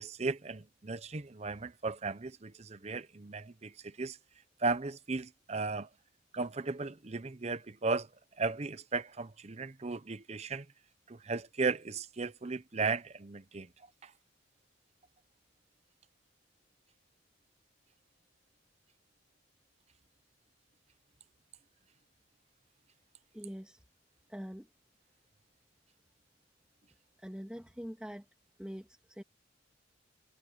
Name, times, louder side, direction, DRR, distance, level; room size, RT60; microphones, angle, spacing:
voice 1, 0.0-4.2 4.6-5.9 6.3-8.1 8.4-10.7 11.1-13.7 14.0-14.1, right 4 dB, 35° right, 0.7 m, -36 dB
voice 2, 23.3-23.8 24.3-24.7 27.2-28.3 28.6-29.2, equal, 5° right, 2.2 m, -44 dB
head